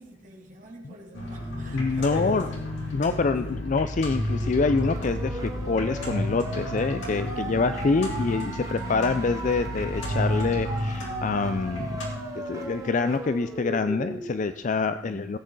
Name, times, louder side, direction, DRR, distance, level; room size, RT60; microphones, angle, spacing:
voice 1, 0.0-3.5 7.2-8.2 15.0-15.3, right 1 dB, 40° right, -2 dB, 2.9 m, -44 dB
sound 1, 1.1-12.1, left 1 dB, 75° left, 3.5 m, -32 dB
voice 2, 1.7-2.5 2.9-12.0 12.4-15.4, left 4 dB, 40° left, 11 dB, 0.4 m, -26 dB
sound 2, 4.3-14.3, right 1 dB, 15° right, 1.5 m, -36 dB
17.5 x 8.6 x 3.9 m, 0.98 s
head